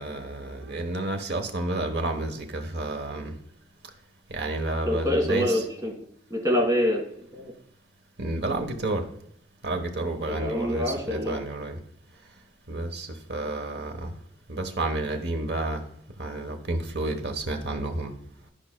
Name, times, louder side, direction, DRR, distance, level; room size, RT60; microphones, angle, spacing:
voice 1, 0.0-3.3 4.3-5.6 8.2-9.0 9.6-11.8 12.7-14.1 14.5-15.8 16.2-18.1, right 2 dB, 65° right, 5 dB, 1.1 m, -30 dB
voice 2, 4.9-5.9 6.3-7.0 7.3-7.5 10.3-11.4, left 1 dB, 20° right, -1 dB, 1.9 m, -25 dB
12.5 x 5.0 x 2.2 m, 0.73 s
head